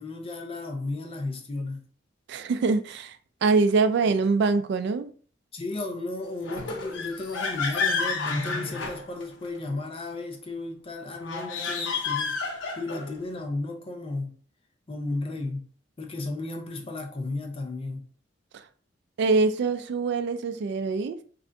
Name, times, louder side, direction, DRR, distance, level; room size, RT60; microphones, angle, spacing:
voice 1, 0.0-1.8 4.0-4.1 5.5-12.4 12.8-14.3 14.9-15.7 16.0-18.1, left 2 dB, 30° left, 0.5 m, -34 dB
voice 2, 2.3-5.1 18.5-18.6 19.2-21.2, right 4 dB, 65° right, 0.3 m, -24 dB
sound 1, 6.4-9.6 11.2-13.2, left 4 dB, 85° left, 0.6 m, -30 dB
3.3 x 2.5 x 2.5 m
head